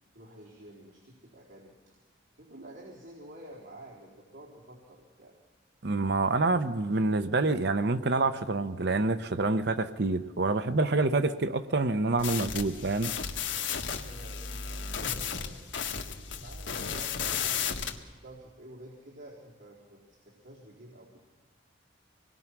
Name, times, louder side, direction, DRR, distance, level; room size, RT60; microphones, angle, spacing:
voice 1, 0.1-1.9 2.4-5.4 14.1-21.2, right 1 dB, 75° right, -5 dB, 4.0 m, -50 dB
voice 2, 5.8-13.1, right 3 dB, 55° right, 11 dB, 0.8 m, -27 dB
sound 1, 12.2-18.0, left 7 dB, 70° left, 1.8 m, -34 dB
26.0 x 20.5 x 6.1 m, 1.3 s
head